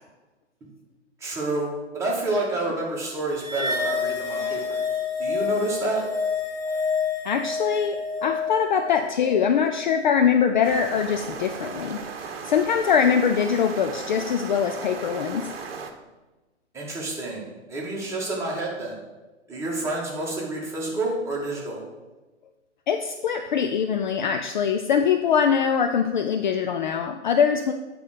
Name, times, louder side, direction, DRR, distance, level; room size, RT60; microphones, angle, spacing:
voice 1, 1.2-4.8 5.2-6.0 16.7-19.0 19.5-21.8, right 2 dB, 10° right, -5 dB, 2.2 m, -29 dB
sound 1, 3.4-10.0, left 5 dB, 10° left, 1.6 m, -28 dB
voice 2, 7.2-12.0 12.4-15.5 22.9-27.7, left 7 dB, 40° left, 6 dB, 0.5 m, -23 dB
Relaxing water sound, 10.6-15.9, right 5 dB, 55° right, 1.1 m, -36 dB
8.3 x 3.9 x 6.5 m, 1.1 s
figure-of-eight pair, 115°, 36 cm